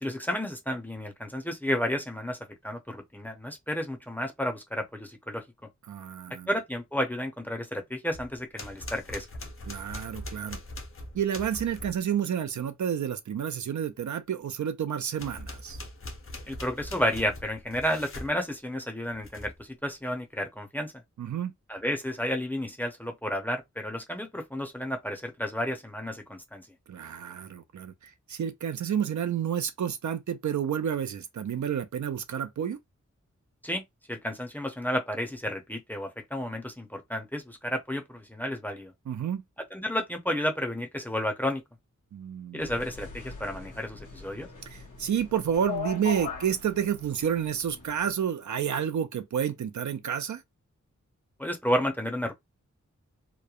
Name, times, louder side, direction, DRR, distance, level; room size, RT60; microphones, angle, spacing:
voice 1, 0.0-2.4 2.6-5.4 6.5-9.3 16.5-20.9 21.7-26.7 33.6-33.8 34.1-38.9 39.7-41.6 42.5-44.5 51.4-52.3, equal, 5° left, 0.6 m, -31 dB
voice 2, 5.9-6.5 9.7-10.6 11.1-15.8 21.2-21.5 26.9-32.8 39.1-39.4 42.1-42.6 44.7-50.4, right 8 dB, 75° right, 0.4 m, -30 dB
sound 1, 8.1-12.0 15.1-18.4 19.1-19.6, left 1 dB, 45° left, 0.7 m, -42 dB
sound 2, 42.6-48.1, left 5 dB, 90° left, 1.0 m, -40 dB
3.0 x 2.0 x 2.3 m
wide cardioid pair, 95°, 30 cm